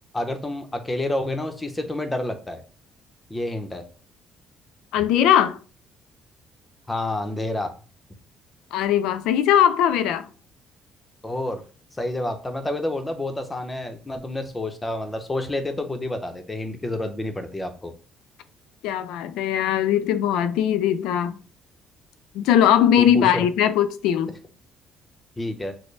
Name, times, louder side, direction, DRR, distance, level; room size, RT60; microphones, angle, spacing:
voice 1, 0.1-2.6 3.3-3.8 6.9-7.7 11.2-11.6 12.0-17.9 23.0-23.4 25.4-25.7, left 1 dB, 15° left, 0.8 m, -29 dB
voice 2, 4.9-5.6 8.7-10.3 18.8-21.4 22.3-24.4, left 10 dB, 85° left, 0.4 m, -20 dB
6.4 x 2.2 x 3.3 m
cardioid pair, 115°, 0 cm